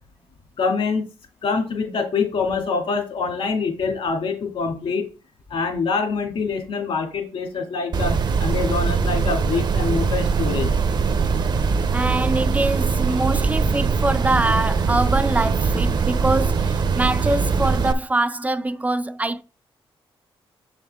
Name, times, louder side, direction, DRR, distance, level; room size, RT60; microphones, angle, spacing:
voice 1, 0.6-1.0 1.4-5.1 5.5-10.7, left 4 dB, 70° left, 2.3 m, -25 dB
sound 1, 7.9-17.9, right 5 dB, 50° right, 0.7 m, -21 dB
voice 2, 11.9-19.4, right 2 dB, 15° right, 0.4 m, -24 dB
6.9 x 5.7 x 3.6 m
cardioid pair, 100°, 10 cm